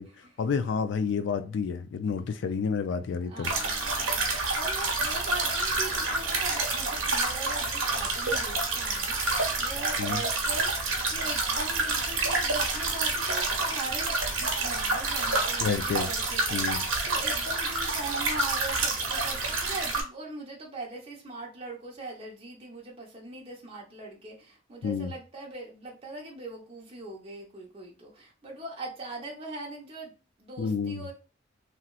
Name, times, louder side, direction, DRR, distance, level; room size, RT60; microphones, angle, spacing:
voice 1, 0.4-3.5 10.0-10.2 15.6-16.1 16.5-16.8 24.8-25.1 30.6-31.0, left 5 dB, 60° left, 0.3 m, -29 dB
voice 2, 3.3-31.1, right 2 dB, 30° right, 0.8 m, -41 dB
sound 1, 3.4-20.0, right 3 dB, 75° right, 0.9 m, -28 dB
3.0 x 2.8 x 2.3 m
head